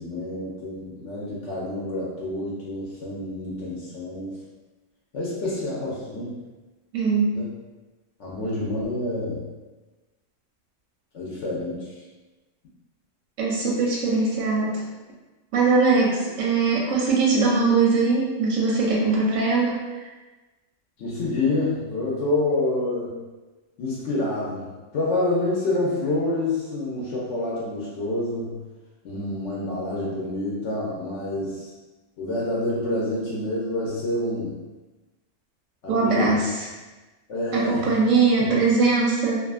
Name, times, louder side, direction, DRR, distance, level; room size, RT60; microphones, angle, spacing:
voice 1, 0.0-4.4 5.1-6.4 7.3-7.4 8.2-9.4 11.1-11.9 21.0-23.2 23.8-28.6 29.0-31.7 32.2-34.6 35.8-36.4 37.3-37.9 38.4-38.5, left 2 dB, 70° left, -6 dB, 0.8 m, -27 dB
voice 2, 6.9-7.4 13.4-14.8 15.5-19.7 35.9-36.5 37.5-39.4, right 4 dB, 90° right, -4 dB, 1.0 m, -21 dB
2.5 x 2.4 x 2.3 m, 1.2 s
omnidirectional pair, 1.3 m